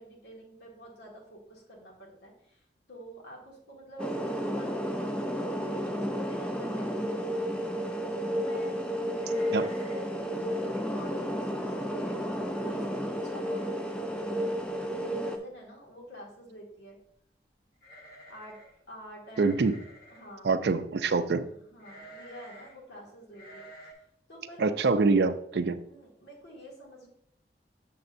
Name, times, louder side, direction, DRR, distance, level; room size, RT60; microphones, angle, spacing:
voice 1, 0.0-2.6 2.9-7.1 8.3-8.8 9.5-10.1 10.5-14.1 14.9-17.0 18.3-18.6 18.9-19.6 20.1-20.6 21.3-23.9 24.3-25.0 25.7-27.1, right 1 dB, 80° left, -2 dB, 1.9 m, -47 dB
sound 1, 4.0-15.4, equal, 5° left, 0.5 m, -32 dB
sound 2, 9.2-10.2 10.4-10.5 11.0-11.3 11.8-11.9 12.2-12.7 13.1-13.2 14.3-14.4 14.7-15.1 17.8-18.8 19.3-20.3 21.8-22.8 23.3-23.9, right 1 dB, 50° left, 1.5 m, -50 dB
voice 2, 19.4-19.7 20.4-21.5 24.6-25.8, right 4 dB, 70° right, 11 dB, 0.4 m, -25 dB
6.9 x 6.6 x 2.6 m, 0.72 s
head